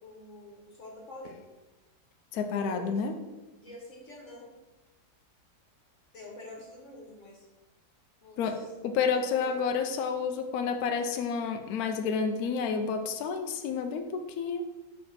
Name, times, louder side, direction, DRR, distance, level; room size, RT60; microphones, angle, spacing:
voice 1, 0.0-1.4 2.5-3.1 3.5-4.5 6.1-7.4 8.2-8.4 9.1-9.6, left 2 dB, 50° left, -3 dB, 1.7 m, -47 dB
voice 2, 2.3-3.2 8.4-14.6, left 5 dB, 70° left, 5 dB, 1.1 m, -30 dB
4.6 x 4.3 x 5.8 m, 1.1 s
omnidirectional pair, 1.8 m